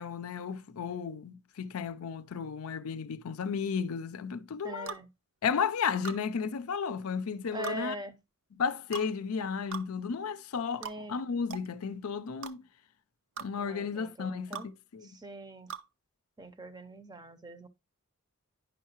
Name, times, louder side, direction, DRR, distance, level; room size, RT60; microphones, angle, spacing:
voice 1, 0.0-4.9 5.4-7.9 8.6-12.6 13.4-15.1, left 6 dB, 75° left, 0.5 m, -33 dB
voice 2, 4.6-5.1 6.1-6.2 7.5-8.2 10.8-11.2 13.6-14.7 15.0-15.7 16.4-17.7, right 2 dB, 20° right, 0.6 m, -42 dB
sound 1, 4.9-5.0 6.0-6.2 7.6-7.8 8.9-9.1 9.7-9.9 10.8-11.0 11.5-11.7 12.4-12.5 13.4-13.5 14.5-14.7 15.7-15.9, right 8 dB, 60° right, 0.6 m, -40 dB
9.9 x 5.6 x 2.9 m
head